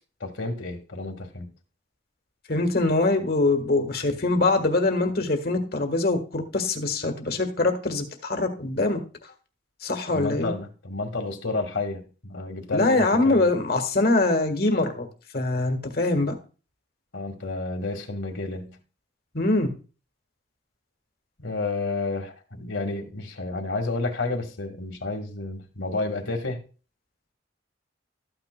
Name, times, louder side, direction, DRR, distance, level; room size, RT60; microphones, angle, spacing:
voice 1, 0.2-1.5 10.1-13.5 17.1-18.8 21.4-26.6, left 3 dB, 90° left, 4 dB, 1.9 m, -31 dB
voice 2, 2.5-9.0 9.8-10.5 12.7-15.1 15.3-16.4 19.3-19.7, left 2 dB, 50° left, 5 dB, 1.5 m, -23 dB
13.5 x 8.9 x 2.3 m, 0.36 s
head